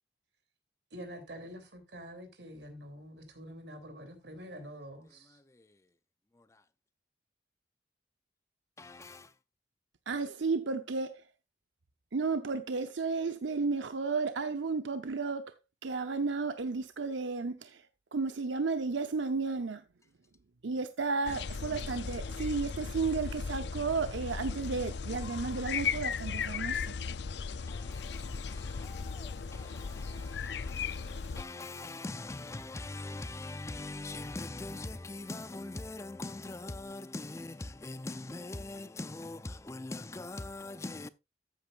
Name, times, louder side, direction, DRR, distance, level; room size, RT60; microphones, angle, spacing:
voice 1, 0.9-5.4, equal, 70° right, 3.0 m, -46 dB
voice 2, 5.3-5.8 6.3-6.6 8.8-9.3 27.7-41.1, left 2 dB, 15° left, 0.4 m, -42 dB
voice 3, 10.1-11.2 12.1-15.5 15.8-17.9 18.1-19.8 20.6-26.9, right 4 dB, 90° right, 0.7 m, -33 dB
sound 1, 21.3-31.4, left 5 dB, 70° left, 0.5 m, -37 dB
14.0 x 8.5 x 2.4 m
head